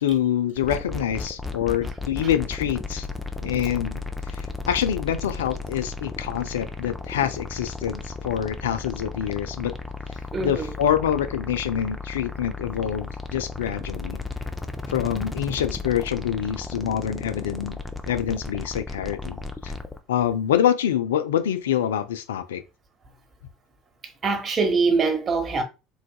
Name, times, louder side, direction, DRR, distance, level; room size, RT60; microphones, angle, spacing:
voice 1, 0.0-3.1 3.4-9.7 10.1-14.2 14.9-17.8 18.0-19.7 20.1-22.6, left 10 dB, 75° left, 0.3 m, -26 dB
sound 1, 0.6-20.0, left 3 dB, 10° left, 0.5 m, -34 dB
voice 2, 10.3-10.7 24.2-25.6, right 4 dB, 35° right, 0.9 m, -23 dB
3.8 x 2.3 x 2.2 m
figure-of-eight pair, 65°, 0 cm